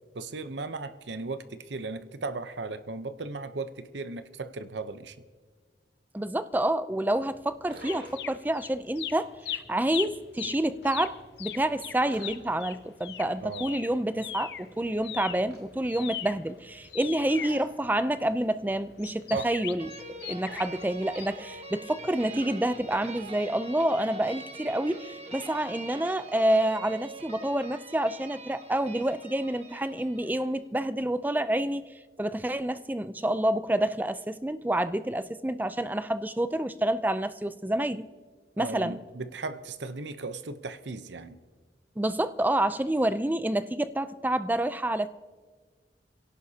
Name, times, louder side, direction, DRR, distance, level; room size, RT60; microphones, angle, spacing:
voice 1, 0.1-5.2 13.4-13.8 19.3-19.5 38.6-41.4, right 3 dB, 85° right, 0.8 m, -36 dB
voice 2, 6.1-31.9 32.2-38.1 38.6-39.0 42.0-45.1, right 1 dB, 10° right, 0.4 m, -28 dB
sound 1, 7.1-23.3, right 1 dB, 60° right, 3.0 m, -53 dB
sound 2, 7.8-8.7 8.9-14.7 15.0-18.3 19.0-20.8 21.1-21.3, left 11 dB, 70° left, 0.6 m, -39 dB
sound 3, 19.8-30.5, right 2 dB, 35° right, 1.5 m, -44 dB
27.5 x 17.0 x 2.8 m
head